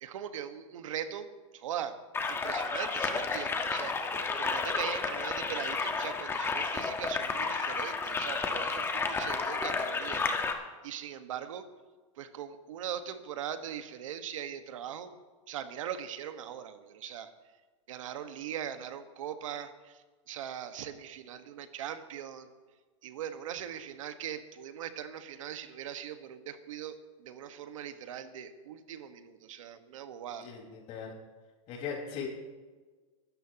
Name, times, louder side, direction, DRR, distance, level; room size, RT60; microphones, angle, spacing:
voice 1, 0.0-2.0 2.3-10.2 10.8-11.6 12.2-15.1 15.5-17.3 17.9-22.5 23.0-30.5, right 9 dB, 75° right, 8 dB, 1.5 m, -40 dB
sound 1, 2.1-10.5, left 4 dB, 15° left, 1.4 m, -32 dB
voice 2, 30.4-31.1 31.7-32.3, left 7 dB, 40° left, -1 dB, 5.0 m, -39 dB
23.0 x 13.5 x 3.0 m, 1.4 s
hypercardioid pair, 140°, 17 cm